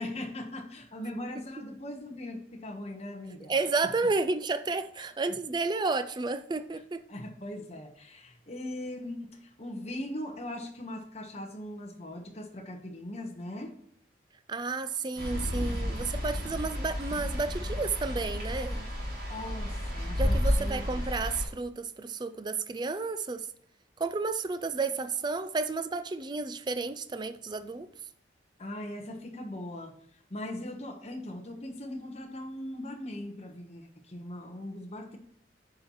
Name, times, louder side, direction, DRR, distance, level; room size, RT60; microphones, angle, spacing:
voice 1, 0.0-3.5 5.0-5.1 6.7-6.8 7.1-13.7 19.3-21.0 28.6-29.9 30.3-35.2, left 1 dB, 35° left, 1.2 m, -40 dB
voice 2, 3.5-7.0 14.5-18.9 20.2-23.5 24.0-27.9, right 3 dB, 25° right, 0.4 m, -31 dB
sound 1, 15.2-21.5, equal, 55° right, 3.0 m, -31 dB
8.7 x 5.5 x 3.1 m
head